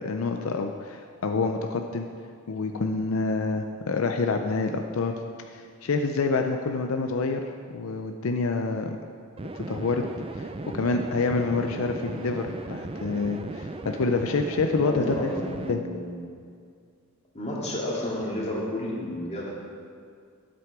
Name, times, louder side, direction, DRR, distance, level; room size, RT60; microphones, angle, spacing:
voice 1, 0.0-2.1 2.5-5.2 5.5-7.4 7.7-9.0 9.5-10.0 10.4-10.5 10.7-15.3 15.7-15.8, left 3 dB, 80° left, 5 dB, 0.5 m, -27 dB
sound 1, 9.4-15.7, right 2 dB, 25° right, 0.5 m, -36 dB
voice 2, 14.8-16.2 17.3-19.6, left 1 dB, 30° left, -4 dB, 2.2 m, -31 dB
12.0 x 7.7 x 4.7 m, 2.2 s
head